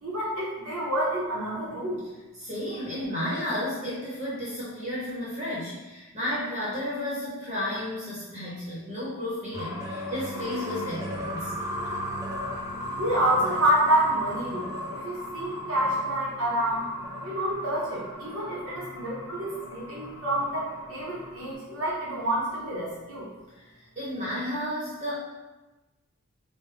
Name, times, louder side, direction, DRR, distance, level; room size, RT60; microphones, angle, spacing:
voice 1, 0.0-2.0 13.0-16.8 17.2-23.3, right 1 dB, 70° right, -6 dB, 0.8 m, -28 dB
voice 2, 2.4-11.5 23.5-23.6 24.0-25.2, left 1 dB, 30° right, -8 dB, 0.8 m, -32 dB
sound 1, 9.5-21.5, left 1 dB, 15° right, 0.4 m, -36 dB
3.3 x 2.1 x 3.3 m, 1.1 s
head